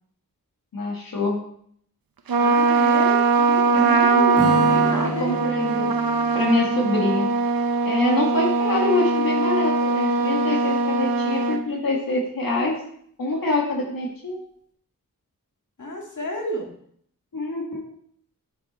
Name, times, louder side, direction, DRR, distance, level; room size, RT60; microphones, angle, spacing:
voice 1, 0.7-1.3 3.7-4.6 5.0-5.9 6.3-7.3 7.8-12.7 13.2-14.4 17.3-17.9, left 2 dB, 75° left, -2 dB, 1.9 m, -25 dB
Trumpet, 2.3-11.6, right 4 dB, 80° right, 0.8 m, -21 dB
voice 2, 2.4-5.3 15.8-16.7, left 1 dB, 55° left, 1 dB, 2.2 m, -31 dB
Strum, 4.3-8.5, equal, 40° right, 1.6 m, -32 dB
8.5 x 5.8 x 4.3 m, 0.64 s
cardioid pair, 55°, 35 cm